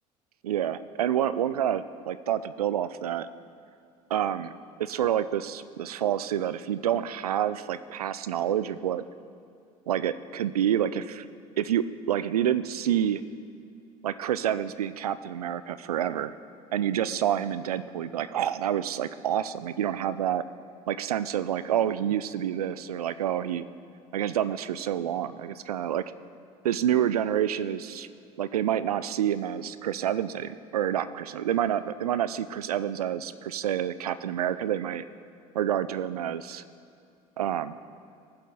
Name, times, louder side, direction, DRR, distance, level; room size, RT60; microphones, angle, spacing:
voice 1, 0.4-3.3 4.1-4.5 4.8-9.0 9.9-11.3 11.6-13.2 14.0-16.3 16.7-20.4 20.9-23.7 24.1-26.0 26.6-28.1 28.4-35.0 35.5-36.6 37.4-37.8, right 10 dB, 85° right, 14 dB, 0.4 m, -28 dB
19.0 x 7.7 x 3.6 m, 2.5 s
hypercardioid pair, 65°, 19 cm